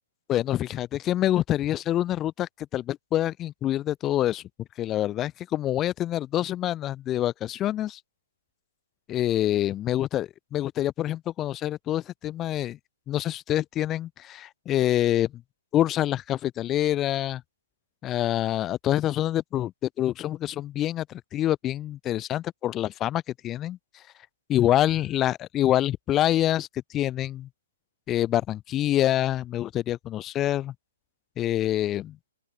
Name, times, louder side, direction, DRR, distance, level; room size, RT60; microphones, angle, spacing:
voice 1, 0.3-4.4 4.8-8.0 9.1-12.8 13.1-15.3 15.7-17.4 18.0-19.7 20.0-23.8 24.5-27.5 28.1-30.7 31.4-32.2, left 13 dB, 20° left, 0.5 m, -26 dB
open air
figure-of-eight pair, 120°, 0 cm